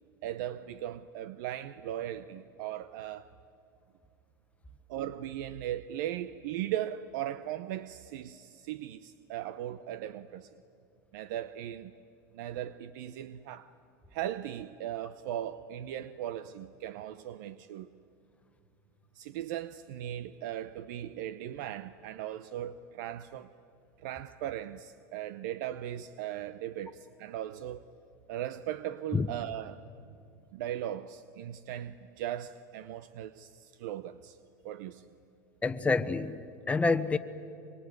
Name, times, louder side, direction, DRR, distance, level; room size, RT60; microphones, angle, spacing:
voice 1, 0.2-3.3 4.9-10.6 11.1-11.9 12.3-13.7 14.1-17.9 19.1-23.5 24.0-27.9 28.3-29.8 30.5-34.4 34.6-35.0, right 12 dB, 75° right, 0.7 m, -38 dB
voice 2, 35.6-37.2, left 3 dB, 15° left, 1.1 m, -28 dB
24.5 x 23.5 x 9.5 m
supercardioid pair, 105°, 10 cm